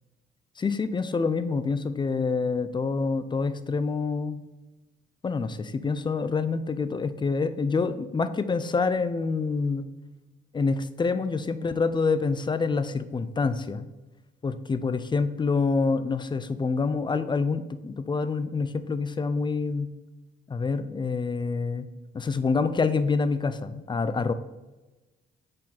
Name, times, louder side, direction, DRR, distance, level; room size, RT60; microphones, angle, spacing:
voice 1, 0.6-4.4 5.2-9.9 10.5-13.9 14.4-19.9 20.5-21.9 22.1-24.3, left 4 dB, 25° left, 12 dB, 0.4 m, -27 dB
6.3 x 4.1 x 4.1 m, 1.1 s
cardioid pair, 90°, 20 cm